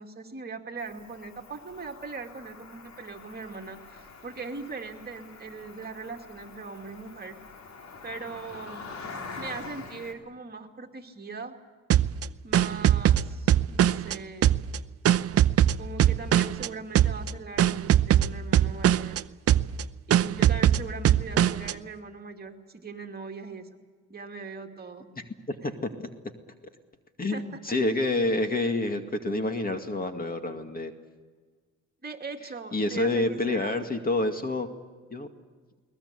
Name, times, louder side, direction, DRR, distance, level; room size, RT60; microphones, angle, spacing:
voice 1, 0.0-7.4 8.0-8.8 9.4-11.5 12.4-14.5 15.8-19.2 20.1-23.8 24.1-25.1 25.6-25.7 27.3-27.4 32.0-33.7, right 4 dB, 30° right, 4 dB, 2.6 m, -40 dB
Cricket, 0.8-10.1, left 4 dB, 65° left, 4.0 m, -45 dB
sound 1, 11.9-14.1 14.4-16.7 16.9-17.3 17.6-19.2 19.5-19.8 20.1-21.7, right 11 dB, 50° right, 0.6 m, -21 dB
voice 2, 25.2-26.1 27.2-30.9 32.7-34.7 35.1-35.3, left 2 dB, 30° left, 6 dB, 2.2 m, -28 dB
22.0 x 19.5 x 8.3 m, 1.5 s
cardioid pair, 90°, 30 cm